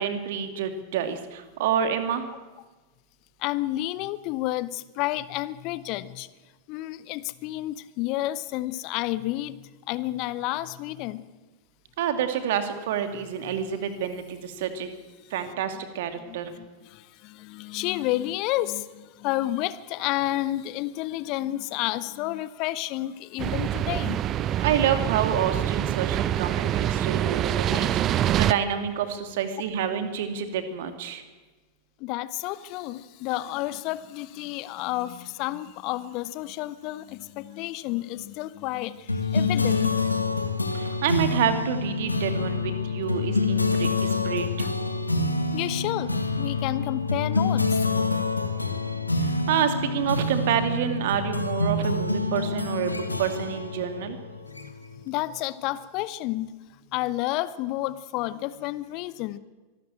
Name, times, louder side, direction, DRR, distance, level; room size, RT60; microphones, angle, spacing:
voice 1, 0.0-2.2 12.0-14.9 15.3-16.5 24.6-27.9 28.3-31.2 40.7-44.7 49.2-54.2, right 8 dB, 55° right, 8 dB, 2.4 m, -28 dB
voice 2, 3.4-6.3 6.7-11.2 13.5-13.6 16.3-24.2 27.6-27.8 28.3-28.4 32.0-40.1 45.5-47.9 54.5-56.6 56.9-59.4, left 16 dB, 40° left, 16 dB, 0.9 m, -31 dB
sound 1, 23.4-28.5, right 11 dB, 30° right, 0.7 m, -25 dB
sound 2, 39.1-55.0, left 3 dB, 85° left, 1.7 m, -27 dB
24.5 x 13.0 x 8.9 m, 1.3 s
figure-of-eight pair, 90°, 0 cm